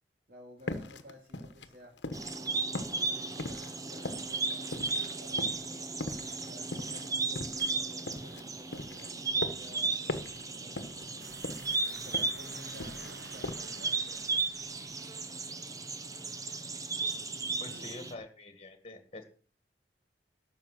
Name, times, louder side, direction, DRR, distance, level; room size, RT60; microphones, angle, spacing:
voice 1, 0.3-1.9 3.0-5.8 6.3-14.6 17.3-17.9, equal, 55° right, -1 dB, 2.6 m, -54 dB
sound 1, 0.7-2.5 2.7-5.1 5.4-5.7 6.0-8.4 8.7-9.8 10.1-10.4 10.7-11.2 11.4-12.4 12.7-13.2 13.4-13.6, left 2 dB, 80° left, 1.2 m, -40 dB
sound 2, 2.1-18.1, right 3 dB, 20° right, 1.0 m, -35 dB
sound 3, 11.2-15.7, right 4 dB, 85° right, 1.8 m, -53 dB
voice 2, 17.6-19.2, left 2 dB, 35° left, 8 dB, 1.8 m, -46 dB
12.0 x 7.0 x 7.6 m, 0.43 s
head